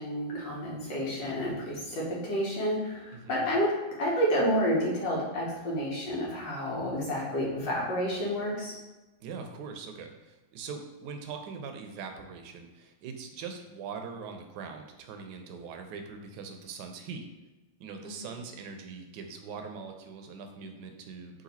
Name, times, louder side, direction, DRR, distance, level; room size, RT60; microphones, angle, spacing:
voice 1, 0.0-8.7 18.0-18.3, equal, 85° left, -4 dB, 1.8 m, -30 dB
voice 2, 9.2-17.2 17.8-21.4, right 5 dB, 75° right, 5 dB, 1.1 m, -42 dB
3.9 x 2.7 x 4.1 m, 1.1 s
omnidirectional pair, 1.9 m